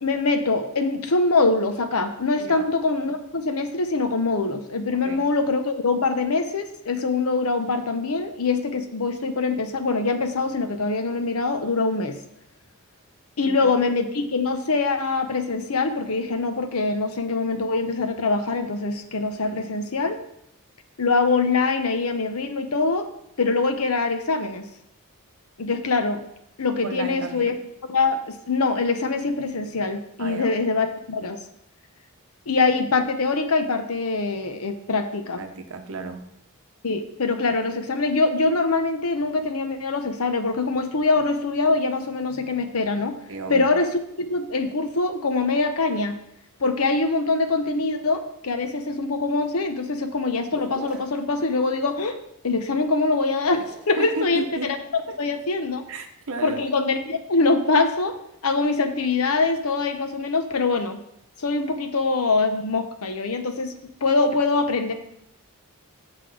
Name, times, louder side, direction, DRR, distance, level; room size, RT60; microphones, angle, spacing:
voice 1, 0.0-12.2 13.4-20.2 21.0-23.1 23.4-24.6 25.6-26.2 26.6-27.6 27.9-31.4 32.5-35.4 36.8-43.2 43.5-46.2 46.6-52.2 52.4-55.8 56.4-58.1 58.4-61.0 61.4-63.7 64.0-64.9, left 3 dB, 70° left, 7 dB, 0.9 m, -23 dB
voice 2, 2.4-2.7 5.0-5.2 13.4-13.6 19.4-19.6 26.8-27.5 30.2-30.5 35.4-36.2 43.3-43.7 53.9-54.8 55.1-55.2 55.9-56.6, right 3 dB, 65° right, 6 dB, 0.9 m, -33 dB
sound 1, 50.5-51.2 53.4-54.0 56.2-56.8, equal, 5° right, 1.5 m, -43 dB
6.7 x 6.0 x 4.8 m, 0.78 s
head